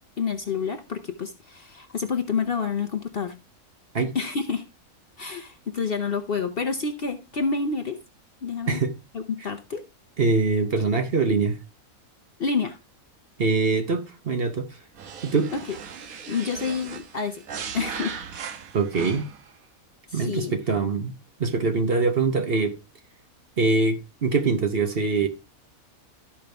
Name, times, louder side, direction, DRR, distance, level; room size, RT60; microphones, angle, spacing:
voice 1, 0.2-3.4 4.1-4.6 5.2-8.0 8.4-8.8 9.1-9.8 12.4-12.8 15.5-15.6 16.3-17.4 17.7-18.2 20.1-20.5, left 5 dB, 50° left, 0.8 m, -28 dB
voice 2, 10.2-11.6 13.4-14.7 15.2-15.5 18.7-19.3 20.1-21.1 21.4-22.7 23.6-25.3, right 4 dB, 45° right, 1.1 m, -23 dB
sound 1, 15.0-19.5, right 7 dB, 75° right, 1.4 m, -37 dB
13.0 x 5.3 x 3.4 m
omnidirectional pair, 1.5 m